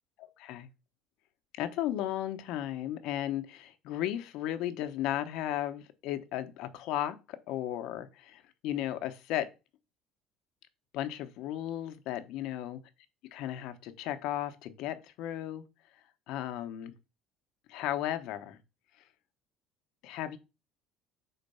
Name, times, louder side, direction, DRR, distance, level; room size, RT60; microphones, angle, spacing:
voice 1, 0.2-0.7 1.5-9.5 10.9-12.8 13.3-15.6 16.3-16.9 17.7-18.6 20.0-20.4, left 12 dB, 70° left, 0.8 m, -35 dB
4.4 x 4.0 x 5.4 m
cardioid pair, 135°, 0 cm